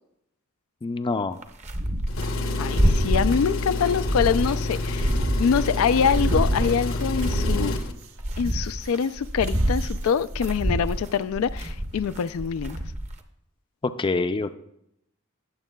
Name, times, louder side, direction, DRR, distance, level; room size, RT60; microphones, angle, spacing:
voice 1, 0.8-1.4 14.0-14.5, left 3 dB, 25° left, 0.4 m, -26 dB
sound 1, 1.4-2.3 2.6-3.4 3.8-5.7 6.0-7.9 8.2-13.2, equal, 35° right, 0.8 m, -26 dB
Engine, 2.1-7.9, left 2 dB, 75° left, 0.9 m, -28 dB
voice 2, 2.6-5.1 5.4-7.8 8.4-12.8, left 7 dB, 90° left, 0.4 m, -24 dB
sound 2, 4.1-10.9, right 1 dB, 90° right, 1.0 m, -41 dB
20.0 x 7.3 x 2.3 m
head